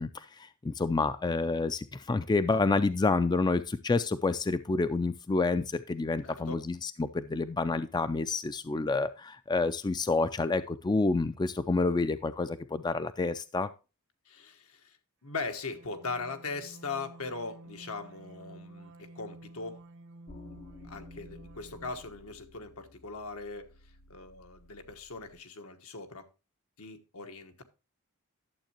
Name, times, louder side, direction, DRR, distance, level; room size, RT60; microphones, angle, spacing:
voice 1, 0.0-13.7, left 3 dB, 20° left, 0.3 m, -29 dB
voice 2, 6.2-6.6 14.3-15.0 15.2-19.8 20.5-23.7 24.1-26.3 26.8-27.6, left 4 dB, 80° left, 1.3 m, -40 dB
sound 1, 15.3-22.1, right 2 dB, 60° right, 0.9 m, -51 dB
sound 2, 20.3-25.4, left 2 dB, 40° left, 0.7 m, -54 dB
11.5 x 7.3 x 2.8 m
head